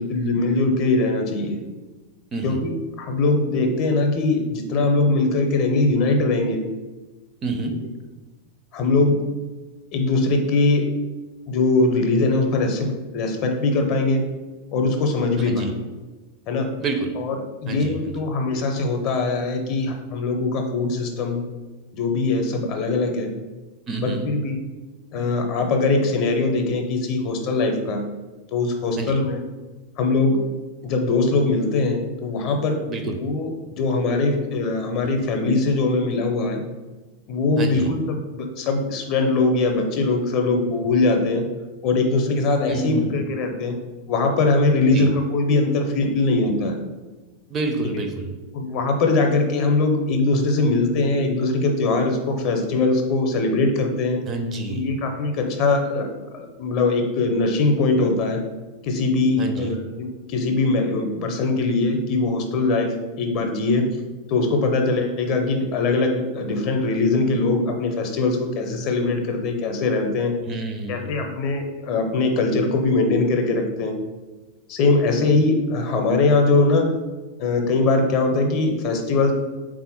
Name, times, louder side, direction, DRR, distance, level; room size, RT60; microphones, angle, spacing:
voice 1, 0.0-1.6 2.4-6.6 8.7-9.2 9.9-10.8 11.5-14.2 14.7-15.8 16.5-16.7 17.2-17.4 17.6-21.4 21.9-23.3 24.0-24.6 25.1-28.0 28.5-29.4 30.0-30.4 30.8-32.8 33.0-36.6 37.3-41.4 41.8-43.7 44.1-46.8 48.5-54.2 54.7-56.1 56.3-58.4 58.8-63.9 64.3-70.3 70.9-74.0 74.7-76.9 77.4-79.3, left 3 dB, 40° left, 4 dB, 0.5 m, -21 dB
voice 2, 7.4-7.8 15.4-15.7 16.8-17.1 17.7-18.2 23.9-24.3 29.0-29.2 32.9-33.2 37.6-37.9 42.7-43.2 44.9-45.1 47.5-48.3 54.3-54.9 59.4-59.7 70.5-71.2, right 3 dB, 25° right, 5 dB, 0.4 m, -28 dB
3.4 x 2.5 x 4.1 m, 1.2 s
figure-of-eight pair, 90°, 0 cm